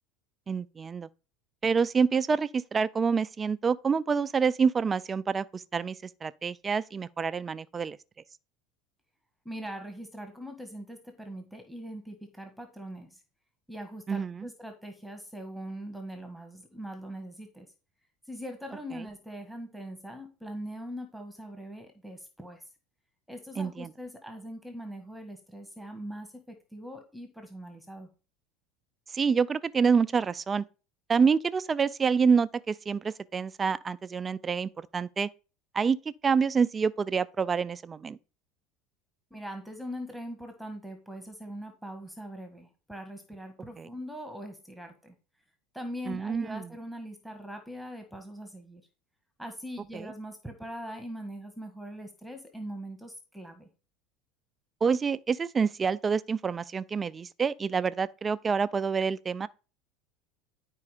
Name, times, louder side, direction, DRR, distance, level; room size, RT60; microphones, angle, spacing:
voice 1, 0.5-1.1 1.6-8.0 14.1-14.5 23.6-23.9 29.1-30.6 31.1-35.3 35.7-36.0 36.2-38.2 43.8-43.9 46.1-46.7 49.9-50.1 54.8-59.5, right 5 dB, 25° right, 0.5 m, -27 dB
voice 2, 9.4-13.2 13.7-17.7 18.3-22.6 23.3-28.1 39.3-45.1 45.7-48.8 49.4-53.7, equal, ahead, 1.6 m, -41 dB
11.0 x 4.6 x 5.0 m
supercardioid pair, 100°, 0 cm